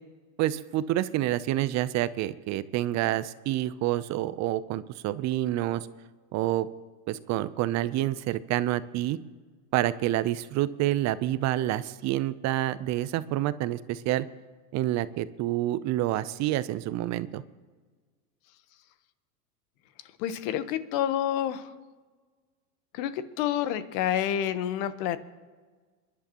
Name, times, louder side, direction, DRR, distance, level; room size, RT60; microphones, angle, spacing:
voice 1, 0.4-5.9 6.3-6.7 7.1-9.2 9.7-14.3 14.7-17.4, right 14 dB, 35° right, 16 dB, 0.6 m, -28 dB
voice 2, 20.2-21.6 22.9-25.2, left 10 dB, 55° left, 12 dB, 1.2 m, -28 dB
28.5 x 11.0 x 3.0 m, 1.4 s
hypercardioid pair, 105°, 47 cm